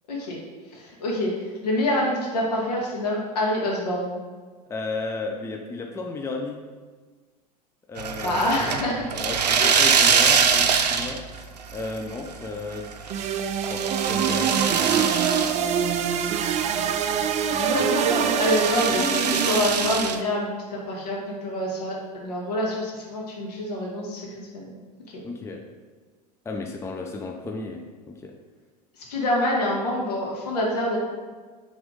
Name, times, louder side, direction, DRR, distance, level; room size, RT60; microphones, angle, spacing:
voice 1, 0.7-1.3 1.6-4.2 8.2-9.2 9.6-9.8 17.6-24.7 29.0-31.0, left 1 dB, 70° left, -3 dB, 1.8 m, -26 dB
voice 2, 4.7-6.6 7.9-8.4 9.2-15.1 17.5-17.9 18.2-18.4 18.9-19.4 25.2-25.6 26.4-27.8 28.1-28.3, left 3 dB, 15° left, 2 dB, 0.6 m, -34 dB
sound 1, 8.0-11.4 11.7-12.3 12.7-15.6 15.9-16.0 16.4-17.9 18.3-20.2, right 6 dB, 80° right, 0.5 m, -23 dB
sound 2, 13.1-20.2, right 8 dB, 35° right, 0.5 m, -25 dB
6.1 x 3.6 x 5.1 m, 1.4 s
figure-of-eight pair, 80°, 21 cm